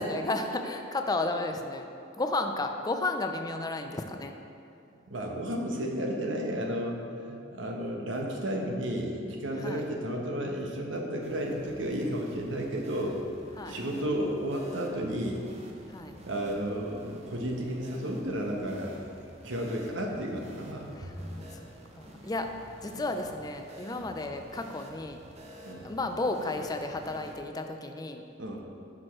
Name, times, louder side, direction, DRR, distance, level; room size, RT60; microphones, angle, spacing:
voice 1, 0.0-1.9 2.2-4.3 9.6-9.8 13.6-13.8 15.9-16.1 21.0-21.5 22.0-22.5 22.8-25.2 25.8-28.2, left 2 dB, 20° left, 5 dB, 0.5 m, -33 dB
voice 2, 5.1-13.2 13.7-15.4 16.2-19.0 19.4-21.1 24.0-24.1 25.6-25.9 28.4-28.6, equal, 75° right, 1 dB, 1.1 m, -33 dB
sound 1, 11.2-27.3, right 1 dB, 35° right, 0.8 m, -49 dB
10.5 x 6.1 x 3.2 m, 2.6 s
head